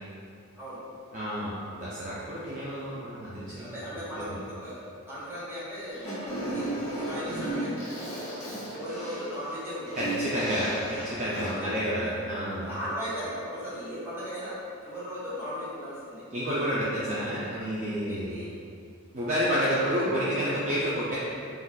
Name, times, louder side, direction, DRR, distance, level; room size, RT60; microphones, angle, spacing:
voice 1, 1.1-3.8 4.1-4.3 10.0-12.7 16.3-18.4 19.1-21.2, equal, 35° right, -9 dB, 0.4 m, -30 dB
voice 2, 3.5-4.8 5.1-8.3 8.7-10.0 10.7-10.8 11.2-12.1 12.6-14.6 14.8-16.2 18.1-18.5, equal, 10° right, -10 dB, 0.8 m, -37 dB
Fart, 5.9-11.7, right 1 dB, 30° left, 1.0 m, -34 dB
3.6 x 2.4 x 2.2 m, 2.3 s
head